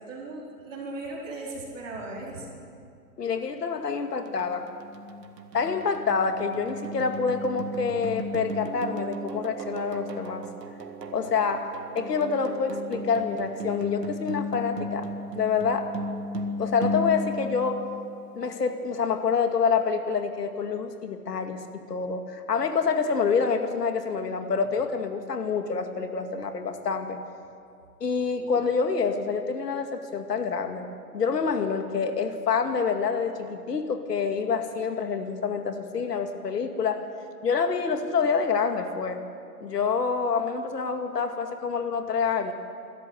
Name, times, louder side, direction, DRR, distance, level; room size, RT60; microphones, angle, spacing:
voice 1, 0.0-2.6, right 2 dB, 50° right, -2 dB, 4.5 m, -37 dB
voice 2, 3.2-4.7 5.5-10.5 11.1-11.7 11.9-15.1 15.4-15.9 16.6-17.8 18.3-27.2 28.0-30.9 31.1-37.0 37.4-39.2 39.6-42.5, left 5 dB, 80° left, 6 dB, 2.3 m, -27 dB
sound 1, 4.3-18.4, equal, 90° right, 2.1 m, -35 dB
26.5 x 13.0 x 8.0 m, 2.4 s
hypercardioid pair, 155°, 47 cm